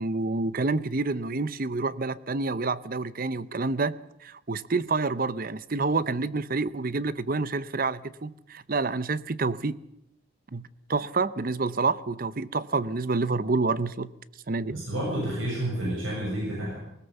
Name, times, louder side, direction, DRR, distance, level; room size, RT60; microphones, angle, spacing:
voice 1, 0.0-3.9 4.2-9.8 10.5-14.1 14.5-14.8, right 3 dB, 45° right, 0.7 m, -28 dB
voice 2, 14.7-16.8, right 1 dB, 70° right, 7.5 m, -30 dB
20.0 x 19.0 x 7.1 m
head